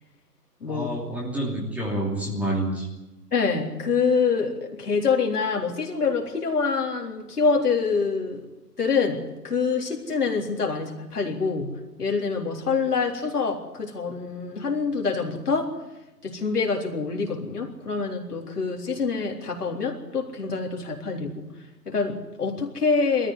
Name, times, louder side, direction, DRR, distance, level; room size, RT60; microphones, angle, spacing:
voice 1, 0.7-2.9, right 1 dB, 5° right, -4 dB, 2.8 m, -28 dB
voice 2, 3.3-8.5 8.8-15.7 16.2-21.5 21.9-23.3, left 5 dB, 65° left, 1 dB, 3.8 m, -26 dB
22.0 x 14.0 x 9.7 m, 1.0 s
figure-of-eight pair, 135°, 49 cm